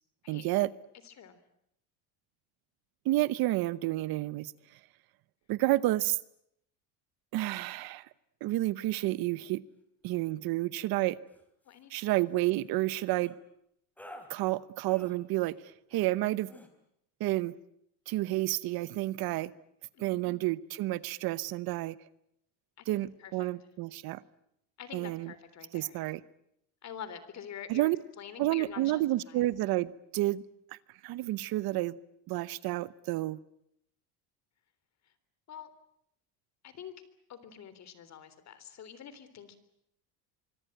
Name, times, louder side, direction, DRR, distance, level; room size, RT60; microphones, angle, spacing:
voice 1, 0.3-0.7 3.0-4.8 5.5-6.2 7.3-8.1 8.4-9.6 10.0-11.2 11.9-13.3 14.3-16.5 17.2-17.5 18.1-19.5 20.0-22.0 22.9-24.2 24.9-25.3 25.7-26.2 27.7-28.0 28.4-30.4 30.7-32.0 32.3-33.4, right 17 dB, 55° right, 17 dB, 1.0 m, -30 dB
voice 2, 1.0-1.4 11.7-12.1 19.9-20.4 22.8-23.5 24.8-26.0 26.8-27.9 28.2-29.0 29.3-29.5 35.5-35.7 36.6-36.9 37.3-39.6, left 8 dB, 40° left, 13 dB, 3.5 m, -46 dB
sound 1, 11.3-11.4 11.7-12.0 13.2-13.4 14.0-14.3 14.9-15.2 15.9-16.1 16.5-16.7, equal, 5° left, 3.8 m, -50 dB
25.0 x 24.5 x 9.0 m, 0.76 s
cardioid pair, 155°, 43 cm